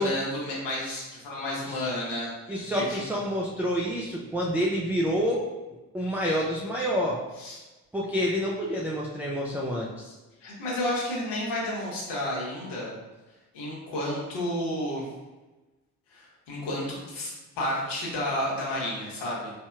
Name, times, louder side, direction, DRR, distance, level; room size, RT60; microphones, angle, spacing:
voice 1, 0.0-3.0 7.4-7.6 10.4-12.9 13.5-15.0 16.1-19.5, left 1 dB, 65° left, -4 dB, 1.3 m, -31 dB
voice 2, 2.5-5.5 5.9-7.2 7.9-10.1, equal, 5° right, -4 dB, 0.5 m, -28 dB
4.4 x 2.7 x 2.4 m, 1.1 s
hypercardioid pair, 40°, 46 cm